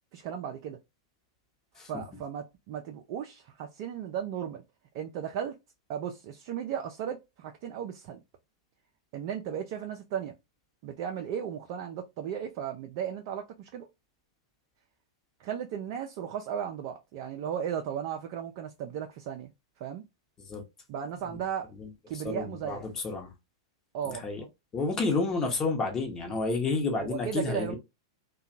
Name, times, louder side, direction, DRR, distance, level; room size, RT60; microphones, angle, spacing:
voice 1, 0.1-0.8 1.9-4.6 4.9-5.6 5.9-8.2 9.1-10.3 10.8-13.9 15.4-19.5 19.8-20.0 20.9-21.7 22.1-22.8 23.9-24.3 27.0-27.8, right 8 dB, 45° right, 0.4 m, -35 dB
voice 2, 22.1-23.3 24.0-24.4 24.7-27.8, left 3 dB, 25° left, 0.9 m, -30 dB
2.7 x 2.2 x 2.5 m
figure-of-eight pair, 95°, 2 cm